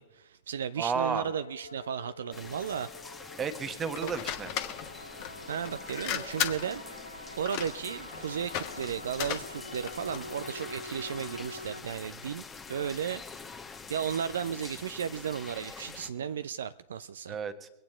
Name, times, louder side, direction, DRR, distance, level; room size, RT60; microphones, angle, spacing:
voice 1, 0.0-2.9 4.0-4.1 5.5-6.8 7.4-13.2 13.9-17.4, right 8 dB, 65° right, 0.4 m, -34 dB
voice 2, 0.8-1.3 3.4-4.5 16.1-16.2 17.3-17.7, right 6 dB, 25° right, 1.2 m, -32 dB
sound 1, 1.2-11.8, left 1 dB, 85° left, 0.8 m, -46 dB
sound 2, 2.3-16.1, left 4 dB, 15° left, 1.3 m, -46 dB
sound 3, 3.9-10.3, left 10 dB, 45° left, 1.1 m, -37 dB
23.5 x 9.0 x 4.4 m
figure-of-eight pair, 90°, 0 cm